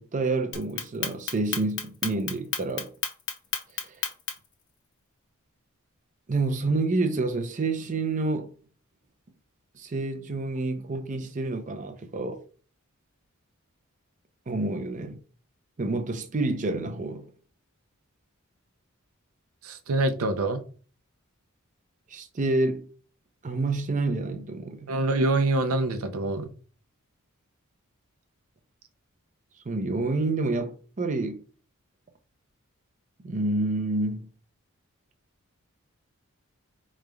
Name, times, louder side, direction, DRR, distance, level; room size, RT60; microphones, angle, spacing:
voice 1, 0.0-2.9 3.8-3.9 6.3-8.5 9.8-12.4 14.5-15.2 15.8-17.3 22.1-22.8 23.4-24.9 29.7-31.4 33.2-34.3, right 2 dB, 35° right, 0.5 m, -28 dB
Clock, 0.5-4.5, left 7 dB, 60° left, 0.9 m, -31 dB
voice 2, 19.6-20.6 24.9-26.5, right 2 dB, 80° right, 0.6 m, -25 dB
5.0 x 3.1 x 2.3 m
head